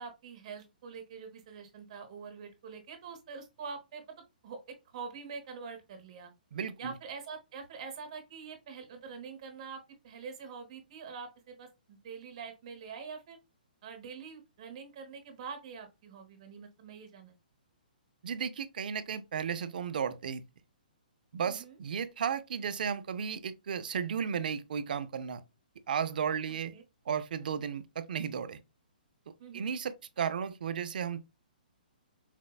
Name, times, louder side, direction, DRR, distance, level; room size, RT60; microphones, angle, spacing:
voice 1, 0.0-4.1 4.4-6.3 6.8-13.4 13.8-17.3 21.4-21.8 26.7-26.8 29.4-29.7, right 5 dB, 45° right, 0.9 m, -45 dB
voice 2, 6.5-6.9 18.2-20.4 21.3-25.4 25.9-26.7 27.1-28.6 29.5-31.2, right 7 dB, 65° right, 0.4 m, -34 dB
4.2 x 2.0 x 2.3 m
hypercardioid pair, 155°, 5 cm